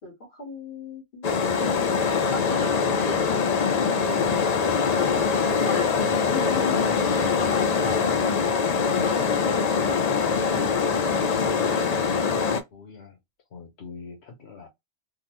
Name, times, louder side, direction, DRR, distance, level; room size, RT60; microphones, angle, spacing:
voice 1, 0.0-3.5 4.0-4.2 4.4-8.6, left 2 dB, 65° left, 1.6 m, -39 dB
sound 1, 1.2-12.6, left 5 dB, 50° left, 0.5 m, -23 dB
voice 2, 12.7-13.2 13.5-14.7, left 5 dB, 90° left, 1.1 m, -43 dB
3.6 x 2.0 x 2.9 m
omnidirectional pair, 1.1 m